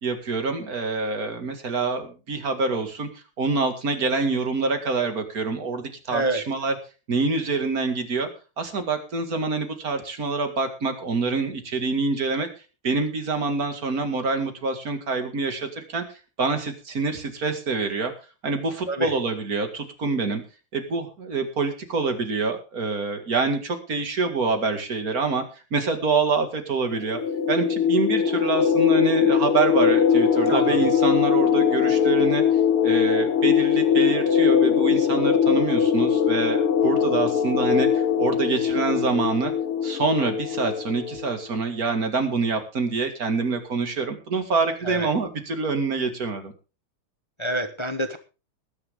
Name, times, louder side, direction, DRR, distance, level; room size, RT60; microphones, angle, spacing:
voice 1, 0.0-3.1 3.4-6.7 7.1-8.3 8.6-12.5 12.8-16.0 16.4-18.1 18.4-20.4 20.7-25.4 25.7-27.2 27.5-32.4 32.8-39.5 39.8-46.5, right 4 dB, 45° right, 6 dB, 2.6 m, -26 dB
voice 2, 6.1-6.4 18.9-19.1 30.5-30.8 44.8-45.1 47.4-48.2, right 1 dB, 35° left, 8 dB, 0.4 m, -26 dB
sound 1, 26.9-41.3, left 7 dB, 85° left, 2.0 m, -21 dB
19.0 x 10.5 x 3.7 m, 0.33 s
omnidirectional pair, 2.3 m